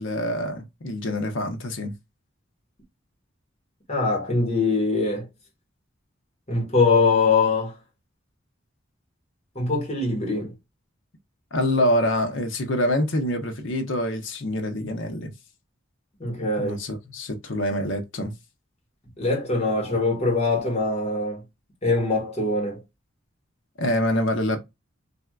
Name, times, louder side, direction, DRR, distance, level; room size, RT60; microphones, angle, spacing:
voice 1, 0.0-1.9 11.5-15.3 16.6-18.3 23.8-24.6, left 1 dB, 75° left, 0.8 m, -25 dB
voice 2, 3.9-5.3 6.5-7.7 9.5-10.5 16.2-16.8 19.2-21.4 21.8-22.8, left 3 dB, 35° left, 1.5 m, -23 dB
3.3 x 2.6 x 2.3 m
head